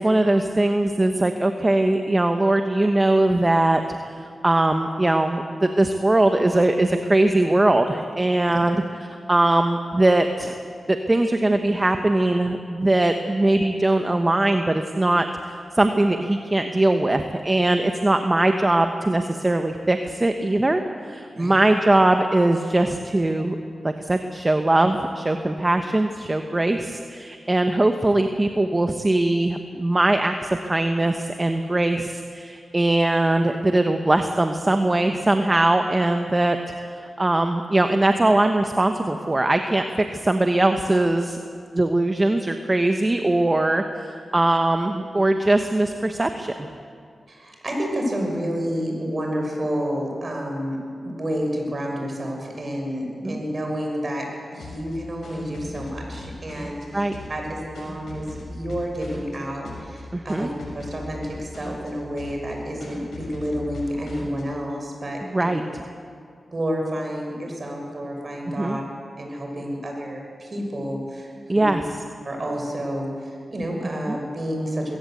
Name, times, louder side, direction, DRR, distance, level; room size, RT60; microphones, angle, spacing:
voice 1, 0.0-8.8 9.3-10.5 10.9-23.6 23.8-36.6 36.9-39.8 40.1-41.4 41.7-46.7 53.2-53.4 56.9-57.2 60.1-60.5 65.3-65.8 68.5-68.8 71.5-71.8 74.1-74.2, right 2 dB, 30° right, 6 dB, 1.3 m, -21 dB
voice 2, 47.3-50.8 51.0-54.2 54.5-65.5 66.5-68.8 69.2-71.7 72.2-75.0, equal, 45° right, 1 dB, 6.3 m, -29 dB
sound 1, 54.6-56.8 57.1-59.4 59.6-60.0 60.3-61.9 62.2-62.5 62.8-64.4, left 2 dB, 85° left, 6.6 m, -39 dB
22.0 x 17.0 x 8.1 m, 2.3 s
cardioid pair, 55°, 0 cm